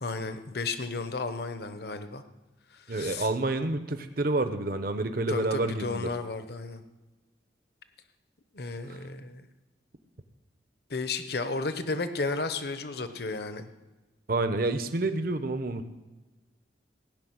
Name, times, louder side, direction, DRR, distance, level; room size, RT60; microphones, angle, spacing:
voice 1, 0.0-2.2 2.9-3.3 5.3-6.8 8.5-9.5 10.9-13.7, left 3 dB, 60° left, 9 dB, 1.0 m, -33 dB
voice 2, 2.9-6.1 14.3-15.9, right 2 dB, 50° right, 9 dB, 0.8 m, -28 dB
17.0 x 6.7 x 9.5 m, 1.2 s
head